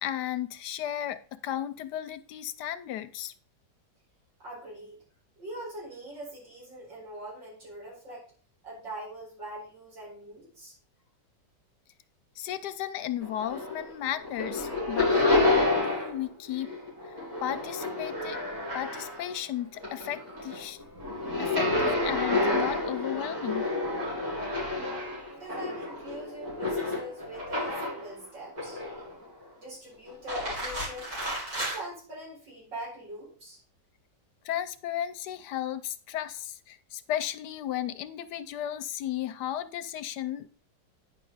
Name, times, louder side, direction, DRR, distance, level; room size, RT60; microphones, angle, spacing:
voice 1, 0.0-3.3 12.4-15.5 15.8-16.7 17.0-17.1 17.4-18.4 18.7-20.8 21.4-23.7 34.4-40.5, left 11 dB, 75° left, 13 dB, 1.1 m, -34 dB
voice 2, 4.4-5.0 5.4-8.2 8.6-10.8 25.3-28.8 29.6-31.1 31.5-33.6, right 1 dB, 90° right, -5 dB, 5.5 m, -42 dB
sound 1, 13.2-13.9 14.2-16.2 16.5-19.4 19.7-28.1 28.6-29.2 30.1-31.8, left 2 dB, 75° right, 5.0 m, -29 dB
9.8 x 5.7 x 3.9 m, 0.41 s
omnidirectional pair, 1.9 m